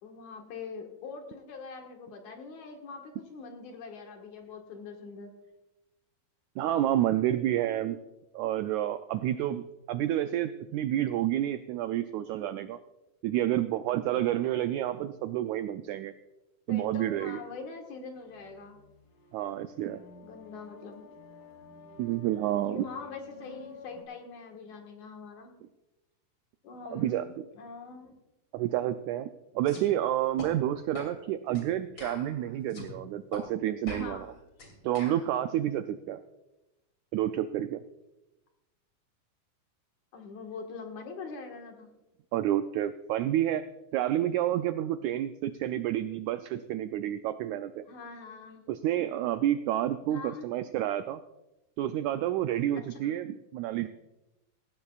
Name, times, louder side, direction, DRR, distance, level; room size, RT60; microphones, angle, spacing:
voice 1, 0.0-5.3 16.7-18.8 20.1-21.1 22.6-25.5 26.6-28.1 33.9-34.3 40.1-41.9 47.9-48.6 50.1-50.5 52.9-53.1, left 4 dB, 65° left, 3 dB, 2.9 m, -43 dB
voice 2, 6.6-8.0 8.3-12.8 13.2-16.1 16.7-17.4 19.3-20.0 22.0-22.9 26.9-27.2 28.5-29.3 29.5-34.3 34.8-36.2 37.1-37.8 42.3-43.6 43.9-47.8 48.7-51.2 51.8-53.9, right 12 dB, 85° right, 10 dB, 1.6 m, -29 dB
sound 1, 18.2-24.0, left 5 dB, 80° left, 3.7 m, -51 dB
sound 2, 29.7-29.9 30.4-30.5 30.9-31.2 31.5-31.7 32.0-32.9 33.3-33.5 33.9-35.3, left 2 dB, 35° left, 3.3 m, -42 dB
18.5 x 15.5 x 2.4 m, 0.97 s
omnidirectional pair, 3.8 m